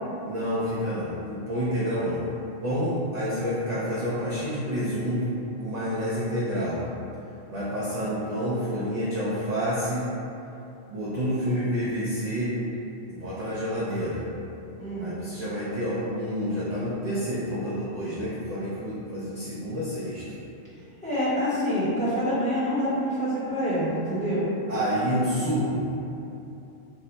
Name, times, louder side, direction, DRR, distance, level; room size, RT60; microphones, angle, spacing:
voice 1, 0.2-2.3 2.6-5.3 5.6-6.9 7.5-10.1 10.9-12.5 13.1-14.3 15.0-20.4 24.7-25.9, equal, 60° right, -9 dB, 0.4 m, -28 dB
voice 2, 14.8-15.1 21.0-24.5, equal, 5° left, -12 dB, 0.8 m, -26 dB
2.7 x 2.1 x 3.8 m, 2.8 s
omnidirectional pair, 1.3 m